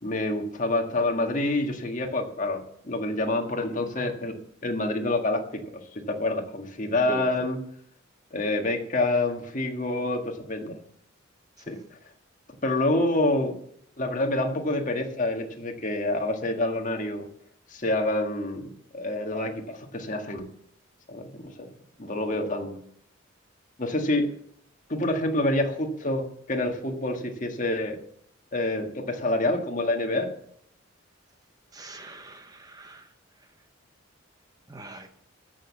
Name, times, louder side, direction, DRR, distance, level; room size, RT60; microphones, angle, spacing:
voice 1, 0.0-7.6 8.3-10.8 11.7-11.8 12.6-13.5 14.0-17.3 17.7-20.5 21.1-21.7 22.0-22.8 23.8-24.3 24.9-28.0 28.5-30.3, left 2 dB, 40° left, 4 dB, 1.7 m, -27 dB
voice 2, 7.1-7.5 11.7-11.8 31.7-33.1 34.7-35.1, right 1 dB, 20° right, 7 dB, 0.7 m, -41 dB
14.5 x 6.5 x 7.4 m, 0.68 s
head